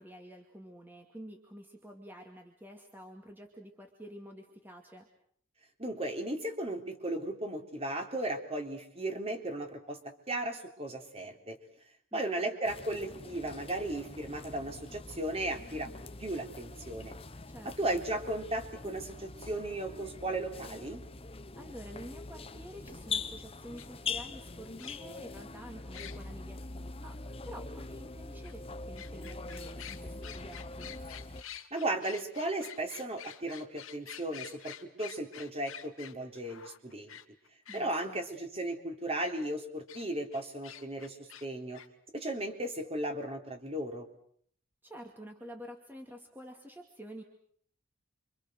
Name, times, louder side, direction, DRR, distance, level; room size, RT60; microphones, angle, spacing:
voice 1, 0.0-5.1 12.1-12.4 17.5-18.0 21.5-30.9 37.7-38.2 44.8-47.2, equal, 10° right, 3 dB, 2.4 m, -49 dB
voice 2, 5.8-10.0 10.3-11.6 12.1-15.9 16.2-17.1 17.6-21.0 31.7-37.2 37.7-41.8 42.1-44.1, right 1 dB, 30° right, 4 dB, 3.7 m, -36 dB
sound 1, 12.6-31.4, left 4 dB, 25° left, 1.0 m, -43 dB
sound 2, 23.8-23.9 24.8-25.2 25.9-26.2 28.4-28.5 29.0-37.8 39.9-40.0 40.3-41.5 41.7-41.9, left 10 dB, 90° left, 2.4 m, -47 dB
29.5 x 25.5 x 6.4 m, 0.63 s
head